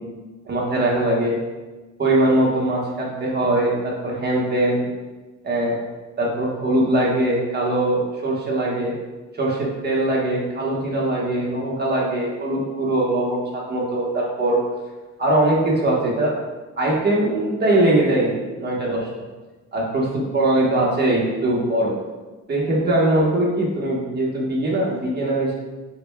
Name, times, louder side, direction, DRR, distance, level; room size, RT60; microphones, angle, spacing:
voice 1, 0.4-1.4 2.0-4.9 5.4-5.8 6.2-8.9 9.4-14.6 15.2-16.3 16.8-19.2 19.7-21.9 22.5-25.5, right 1 dB, 30° right, -4 dB, 1.1 m, -21 dB
6.1 x 2.2 x 2.3 m, 1.2 s
cardioid pair, 100°, 33 cm